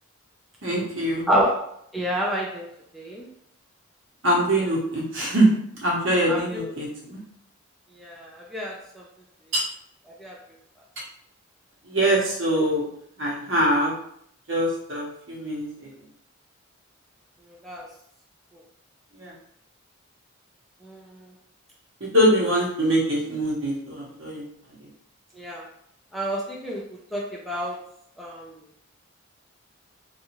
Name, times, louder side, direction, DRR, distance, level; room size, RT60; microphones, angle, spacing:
voice 1, 0.6-1.3 4.2-5.5 5.8-7.2 9.5-9.6 11.9-12.9 13.2-13.9 14.5-15.9 19.2-19.3 22.1-24.4, right 1 dB, 65° right, -3 dB, 0.9 m, -23 dB
voice 2, 1.3-1.7 1.9-2.7 2.9-3.3 6.3-6.7 8.0-9.0 10.2-10.4 17.5-17.9 20.8-21.2 25.4-25.6 26.1-26.8 27.1-27.8 28.2-28.5, equal, ahead, -4 dB, 0.3 m, -28 dB
2.6 x 2.3 x 2.9 m, 0.68 s
head